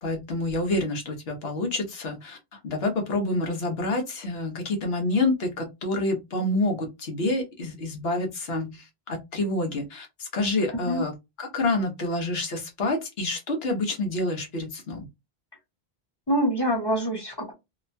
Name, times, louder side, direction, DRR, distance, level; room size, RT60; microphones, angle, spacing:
voice 1, 0.0-11.1 11.4-15.1, left 2 dB, 80° left, 1.2 m, -28 dB
voice 2, 10.7-11.0 16.3-17.5, equal, 25° left, 0.8 m, -25 dB
2.9 x 2.2 x 2.6 m
omnidirectional pair, 1.0 m